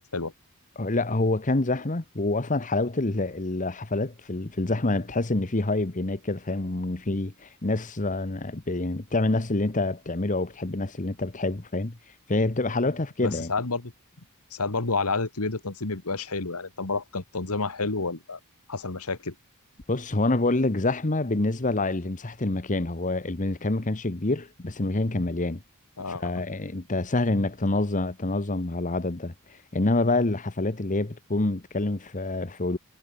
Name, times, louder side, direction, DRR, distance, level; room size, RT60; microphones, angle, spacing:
voice 1, 0.8-12.0 12.3-13.5 19.9-25.6 26.1-32.8, left 2 dB, 35° left, 1.2 m, -27 dB
voice 2, 13.2-13.9 14.5-18.4 18.7-19.3 26.0-26.3, left 3 dB, 85° left, 1.9 m, -29 dB
head